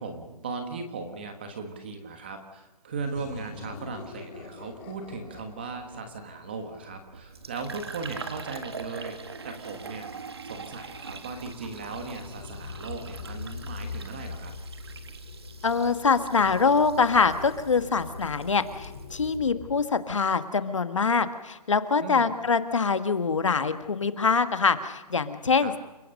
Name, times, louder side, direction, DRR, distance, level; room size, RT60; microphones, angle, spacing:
voice 1, 0.0-10.1 10.4-14.5 22.0-22.3 25.6-25.7, right 4 dB, 15° right, 6 dB, 1.3 m, -37 dB
sound 1, 3.0-7.5, left 3 dB, 10° left, 1.8 m, -46 dB
Fill (with liquid), 6.9-19.4, right 5 dB, 40° right, 1.6 m, -43 dB
sound 2, 9.7-19.8, left 5 dB, 25° left, 2.5 m, -43 dB
voice 2, 15.6-25.7, left 5 dB, 50° left, 10 dB, 1.6 m, -24 dB
29.5 x 17.5 x 6.5 m, 1.0 s
hypercardioid pair, 180°, 21 cm